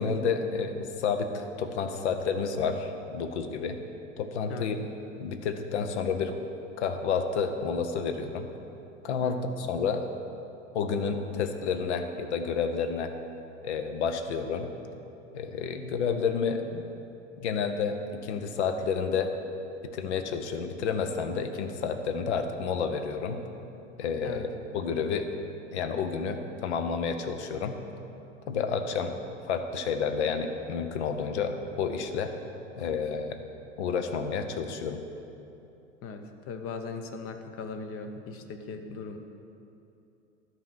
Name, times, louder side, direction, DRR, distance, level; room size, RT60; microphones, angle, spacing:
voice 1, 0.0-3.8 4.2-4.8 5.2-6.3 6.8-8.5 9.0-10.1 10.7-13.1 13.6-14.7 15.3-16.8 17.4-19.3 19.8-23.4 24.0-25.3 25.7-27.8 28.5-29.2 29.5-32.3 32.8-33.4 33.8-35.0, left 5 dB, 65° left, 7 dB, 0.9 m, -30 dB
voice 2, 9.2-9.5 24.2-24.5 36.0-39.2, left 4 dB, 35° left, 7 dB, 0.9 m, -39 dB
12.5 x 4.7 x 6.4 m, 2.8 s
figure-of-eight pair, 80°, 37 cm